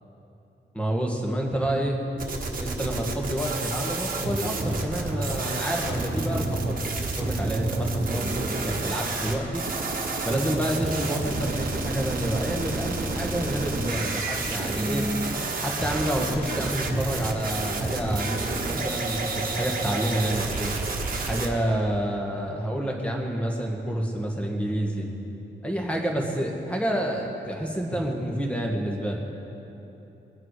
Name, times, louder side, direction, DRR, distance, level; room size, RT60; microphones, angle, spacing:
voice 1, 0.7-2.0 2.6-9.6 10.2-15.1 15.6-20.7 21.3-25.0 25.6-29.2, right 1 dB, 5° left, 0 dB, 1.6 m, -28 dB
sound 1, 2.2-21.5, right 3 dB, 50° right, 1.4 m, -29 dB
21.5 x 9.2 x 4.8 m, 3.0 s
wide cardioid pair, 180°, 19 cm